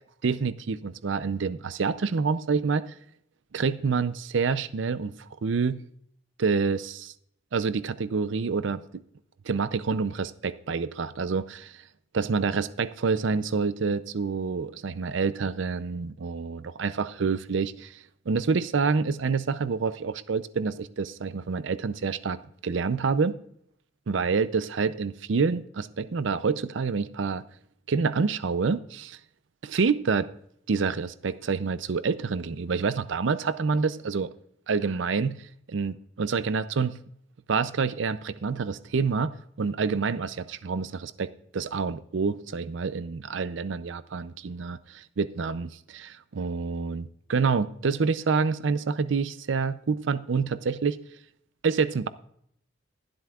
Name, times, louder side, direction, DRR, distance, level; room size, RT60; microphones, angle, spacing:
voice 1, 0.2-2.9 3.5-5.8 6.4-7.1 7.5-8.8 9.5-11.8 12.1-22.4 22.6-23.4 24.1-27.4 27.9-29.2 29.6-30.3 30.7-34.3 34.7-37.0 37.5-39.3 39.6-41.3 41.5-51.0 51.6-52.1, right 5 dB, 70° right, 0.5 m, -27 dB
22.0 x 7.8 x 2.4 m
head